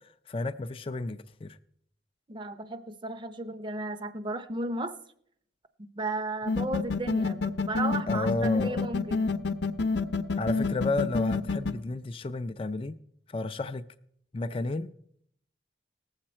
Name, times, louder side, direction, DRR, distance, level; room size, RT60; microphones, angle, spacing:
voice 1, 0.3-1.6 8.1-8.9 10.4-12.9 13.3-13.8 14.3-14.9, left 2 dB, 30° left, 0.4 m, -32 dB
voice 2, 2.3-4.9 5.9-9.3, right 2 dB, 25° right, 0.6 m, -34 dB
sound 1, 6.5-11.7, left 4 dB, 80° left, 0.7 m, -27 dB
19.0 x 7.3 x 4.3 m
head